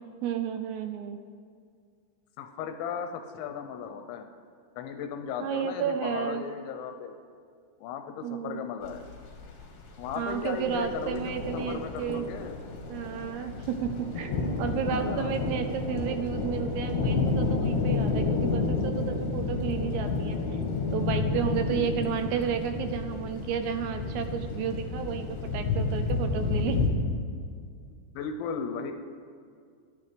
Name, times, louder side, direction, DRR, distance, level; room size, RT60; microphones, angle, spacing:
voice 1, 0.2-1.2 5.4-6.4 8.2-8.7 10.2-12.3 12.9-20.6 20.9-26.8, right 8 dB, 80° right, 7 dB, 2.5 m, -32 dB
voice 2, 2.4-4.3 4.8-7.2 7.8-9.0 10.0-12.6 14.9-15.4 21.7-22.0 28.1-28.9, left 7 dB, 85° left, 6 dB, 3.2 m, -36 dB
sound 1, 8.8-26.9, left 4 dB, 65° left, 3.9 m, -30 dB
26.5 x 11.5 x 3.4 m, 2.2 s
omnidirectional pair, 5.3 m